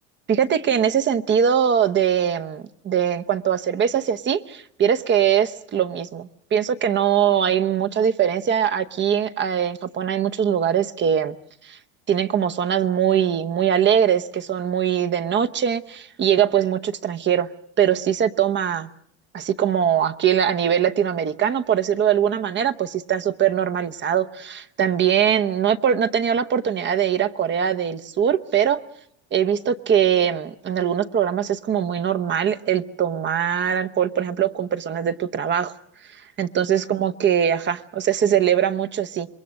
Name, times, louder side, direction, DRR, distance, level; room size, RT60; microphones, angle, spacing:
voice 1, 0.3-11.3 11.6-11.8 12.1-17.5 17.8-18.9 19.3-28.8 29.3-35.7 36.4-39.3, right 9 dB, 30° right, 13 dB, 0.9 m, -21 dB
27.0 x 22.0 x 6.5 m, 0.73 s
supercardioid pair, 110°, 35 cm